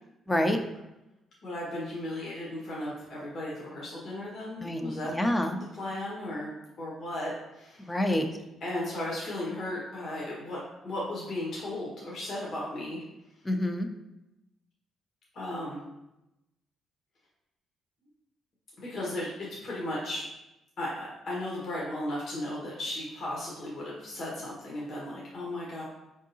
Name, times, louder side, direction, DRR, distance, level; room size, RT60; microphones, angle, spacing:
voice 1, 0.3-0.6 4.6-5.6 7.9-8.3 13.5-13.9, left 1 dB, 15° left, 5 dB, 0.4 m, -27 dB
voice 2, 1.4-5.1 5.5-6.5 6.8-7.9 8.6-13.0 15.3-15.8 18.8-20.2 20.8-25.8, left 1 dB, 60° left, -5 dB, 1.2 m, -35 dB
4.6 x 3.6 x 2.7 m, 0.93 s
cardioid pair, 90°, 0 cm